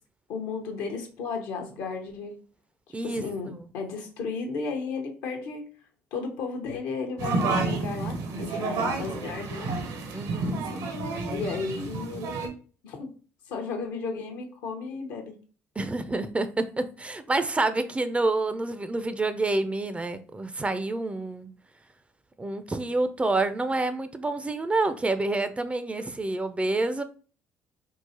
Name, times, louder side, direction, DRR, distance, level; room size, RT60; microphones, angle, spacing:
voice 1, 0.3-2.4 3.0-5.7 6.1-9.7 11.3-12.6 12.8-13.1 13.4-15.3, left 4 dB, 75° left, 0.7 m, -34 dB
voice 2, 2.9-3.2 3.6-3.7 10.1-10.7 15.8-21.5 22.4-27.0, right 2 dB, 20° right, 0.4 m, -28 dB
sound 1, 7.2-12.5, right 3 dB, 65° right, 0.8 m, -30 dB
3.7 x 2.4 x 2.8 m
hypercardioid pair, 65°, 7 cm